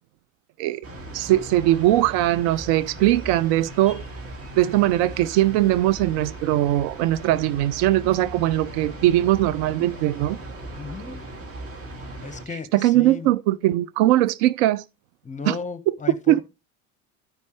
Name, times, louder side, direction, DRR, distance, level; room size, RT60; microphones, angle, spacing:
sound 1, 0.8-12.5, right 2 dB, 35° right, 2.2 m, -38 dB
voice 1, 1.1-4.0 4.6-10.4 12.7-14.8 15.5-15.6 16.3-16.4, right 15 dB, 60° right, 0.5 m, -20 dB
voice 2, 10.8-11.2 12.2-13.3 15.2-16.4, left 5 dB, 20° left, 1.1 m, -34 dB
13.0 x 5.2 x 3.1 m
hypercardioid pair, 85°, 40 cm